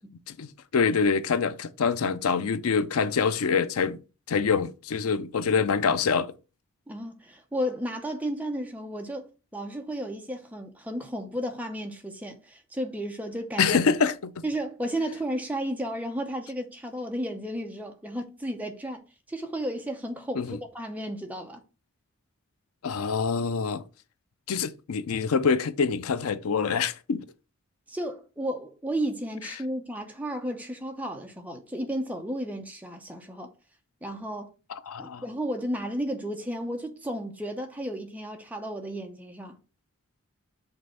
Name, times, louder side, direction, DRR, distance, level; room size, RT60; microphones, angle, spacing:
voice 1, 0.3-4.0 4.3-6.3 13.6-14.3 20.4-20.6 22.8-23.8 24.5-27.2 34.7-35.2, left 5 dB, 90° left, 0.5 m, -25 dB
voice 2, 6.9-13.8 14.4-19.0 19.3-21.6 27.9-33.5 34.0-34.5 35.0-39.6, equal, 5° right, 0.7 m, -33 dB
5.4 x 3.4 x 5.5 m
head